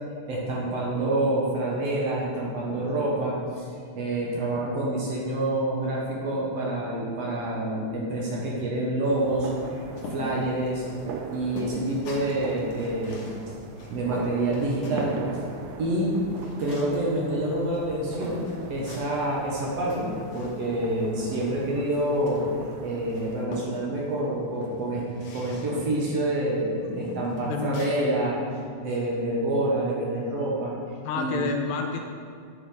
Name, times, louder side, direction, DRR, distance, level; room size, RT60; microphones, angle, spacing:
voice 1, 0.3-3.7 4.0-9.5 10.1-10.8 11.3-13.3 13.9-15.1 15.8-16.1 16.6-22.5 22.8-25.0 25.3-28.4 28.8-30.8 31.2-31.5, right 1 dB, 65° right, -4 dB, 1.9 m, -27 dB
sound 1, 9.0-23.5, right 4 dB, 85° right, 2.1 m, -41 dB
sound 2, 10.0-15.2 15.6-17.1 17.7-17.8 18.2-19.2 19.6-20.7 21.0-22.7 23.1-24.1 24.5-26.0 26.5-26.6 27.0-28.0, left 1 dB, 60° left, 1.9 m, -40 dB
voice 2, 31.0-32.0, left 5 dB, 80° left, 4 dB, 1.8 m, -30 dB
8.3 x 5.1 x 3.9 m, 2.2 s
omnidirectional pair, 3.5 m